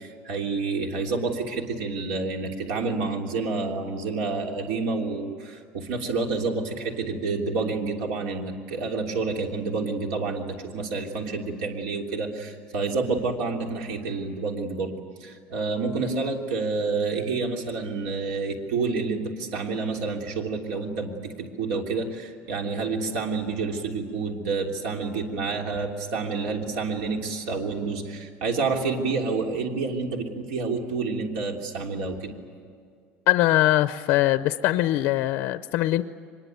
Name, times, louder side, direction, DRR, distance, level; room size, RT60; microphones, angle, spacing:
voice 1, 0.0-14.9 15.2-32.4, right 4 dB, 80° right, 2 dB, 3.2 m, -29 dB
voice 2, 33.3-36.0, left 15 dB, 60° left, 12 dB, 0.6 m, -22 dB
24.5 x 21.5 x 9.3 m, 2.2 s
cardioid pair, 165°, 4 cm